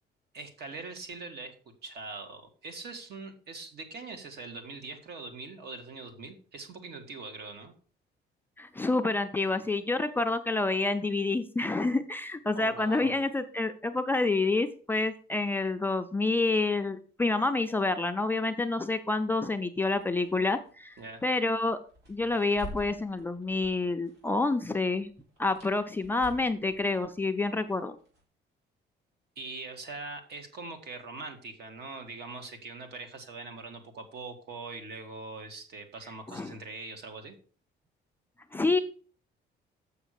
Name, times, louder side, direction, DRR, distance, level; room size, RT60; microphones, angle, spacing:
voice 1, 0.3-1.5 1.8-7.7 12.5-13.2 21.0-21.2 29.4-37.3, right 3 dB, 60° right, 6 dB, 1.8 m, -42 dB
voice 2, 8.6-20.9 21.2-21.8 22.1-25.1 25.4-28.0 36.3-36.5 38.5-38.8, left 3 dB, 10° left, 6 dB, 0.4 m, -28 dB
sound 1, 19.8-24.5 24.7-28.2, equal, 75° right, 5.0 m, -49 dB
7.2 x 6.0 x 6.4 m, 0.42 s
cardioid pair, 180°, 18 cm